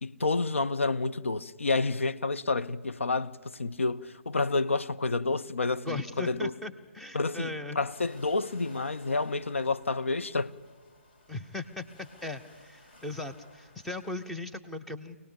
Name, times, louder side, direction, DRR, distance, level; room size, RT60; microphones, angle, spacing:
voice 1, 0.0-6.5 7.1-10.5, left 3 dB, 65° left, 0.7 m, -29 dB
voice 2, 5.9-7.8 11.3-15.2, left 2 dB, ahead, 0.7 m, -38 dB
sound 1, 7.9-14.3, left 2 dB, 45° left, 2.8 m, -57 dB
25.0 x 18.5 x 8.7 m
figure-of-eight pair, 140°, 7 cm